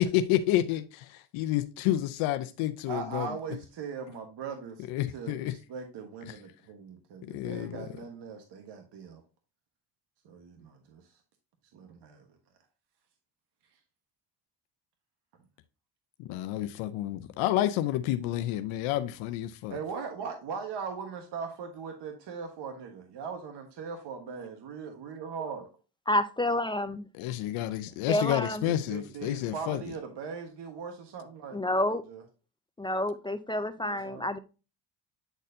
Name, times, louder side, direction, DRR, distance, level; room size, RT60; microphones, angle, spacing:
voice 1, 0.0-3.3 4.9-5.5 7.2-7.9 16.2-19.8 27.2-29.8, left 13 dB, 90° left, 0.7 m, -29 dB
voice 2, 2.9-4.8 5.1-9.2 10.2-11.0 11.7-12.2 19.7-25.6 28.4-31.6 32.1-32.2 33.8-34.3, right 5 dB, 60° right, 1.3 m, -40 dB
voice 3, 26.1-27.1 28.1-28.7 31.5-32.0 32.8-34.4, left 1 dB, 10° left, 0.3 m, -29 dB
9.1 x 4.2 x 2.6 m
cardioid pair, 95°, 47 cm